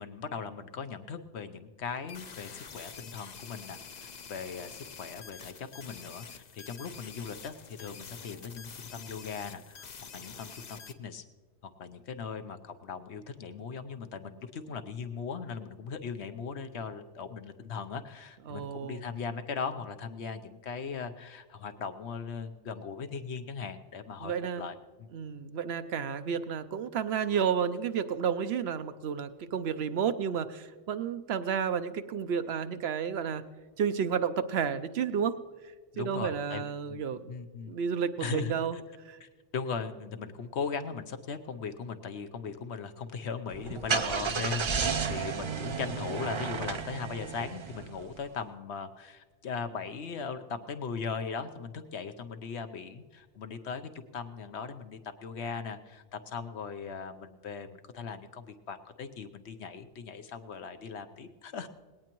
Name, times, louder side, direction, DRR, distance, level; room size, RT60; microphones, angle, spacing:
voice 1, 0.0-11.2 11.6-25.1 35.9-37.8 38.2-38.8 39.2-61.7, left 5 dB, 70° left, 8 dB, 1.0 m, -39 dB
sound 1, 2.1-10.9, left 6 dB, 45° left, 0.7 m, -47 dB
voice 2, 18.5-19.0 24.2-24.6 25.1-33.4 33.8-35.3 36.0-37.3 37.7-38.8 39.1-39.2 45.3-45.8, right 7 dB, 65° right, 11 dB, 0.8 m, -31 dB
Car / Engine starting, 43.5-48.2, right 6 dB, 45° right, 0.4 m, -32 dB
19.5 x 17.5 x 3.0 m, 1.4 s
omnidirectional pair, 1.2 m